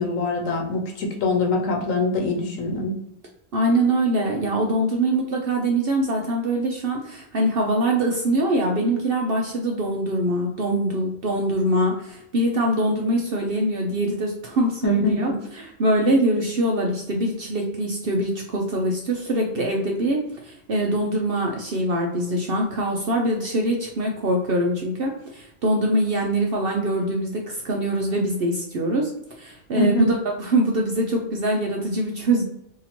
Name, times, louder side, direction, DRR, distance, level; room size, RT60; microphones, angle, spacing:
voice 1, 0.0-2.9 14.8-15.1 29.8-30.1, left 2 dB, 70° left, 2 dB, 1.2 m, -23 dB
voice 2, 3.5-29.1 29.4-32.4, right 1 dB, 60° right, 0 dB, 0.6 m, -23 dB
2.8 x 2.8 x 4.1 m, 0.77 s
omnidirectional pair, 1.4 m